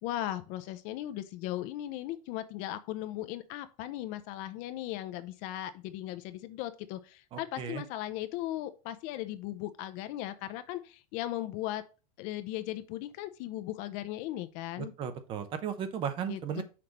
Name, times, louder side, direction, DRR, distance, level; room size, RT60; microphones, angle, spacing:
voice 1, 0.0-11.8 12.2-14.9 16.3-16.6, left 14 dB, 45° left, 0.6 m, -37 dB
voice 2, 7.3-7.8 14.8-16.6, right 8 dB, 30° right, 0.6 m, -35 dB
5.9 x 3.2 x 5.1 m
supercardioid pair, 150°, 19 cm